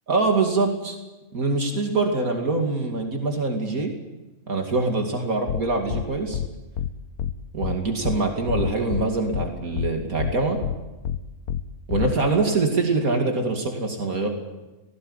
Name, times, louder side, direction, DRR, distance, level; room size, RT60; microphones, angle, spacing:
voice 1, 0.1-1.0 1.3-3.9 4.5-6.4 7.5-10.6 11.9-14.3, right 3 dB, 70° right, 3 dB, 2.9 m, -24 dB
sound 1, 5.5-5.6 5.9-6.0 6.3-6.5 6.8-6.9 7.2-7.3 7.6-7.7 8.0-8.2 8.5-9.0 9.3-9.5 9.8-9.9 10.2-10.3 10.6-10.7 11.0-11.2 11.5-11.6 11.9-12.1, left 9 dB, 85° left, 1.5 m, -26 dB
19.0 x 17.0 x 9.9 m, 1.1 s
omnidirectional pair, 1.5 m